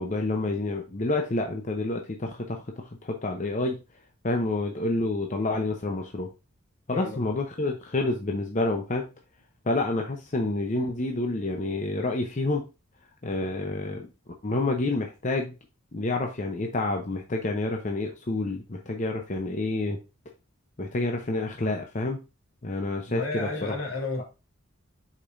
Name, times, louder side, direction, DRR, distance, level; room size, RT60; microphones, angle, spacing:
voice 1, 0.0-3.8 4.2-6.3 6.9-9.1 9.7-12.7 13.2-14.1 14.4-15.5 15.9-20.0 20.8-22.2 22.6-23.7, left 2 dB, 35° left, 3 dB, 0.7 m, -28 dB
voice 2, 6.9-7.3 23.1-24.2, left 3 dB, 75° left, 0 dB, 2.5 m, -32 dB
6.9 x 5.3 x 2.6 m, 0.28 s
head